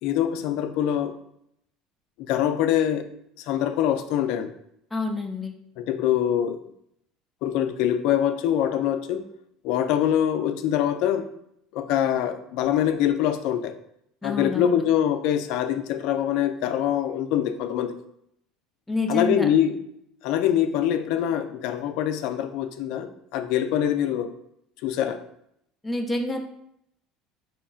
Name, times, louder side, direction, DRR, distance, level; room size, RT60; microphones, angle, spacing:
voice 1, 0.0-1.1 2.3-3.1 3.4-4.5 5.8-6.6 7.4-9.2 9.6-11.3 11.7-13.7 14.2-17.9 19.1-19.8 20.2-24.3 24.8-25.2, left 10 dB, 70° left, 8 dB, 0.4 m, -24 dB
voice 2, 4.9-5.5 14.2-14.8 18.9-19.5 25.8-26.4, left 2 dB, 10° left, 2 dB, 0.5 m, -28 dB
4.3 x 3.0 x 2.4 m, 0.74 s
hypercardioid pair, 80°, 0 cm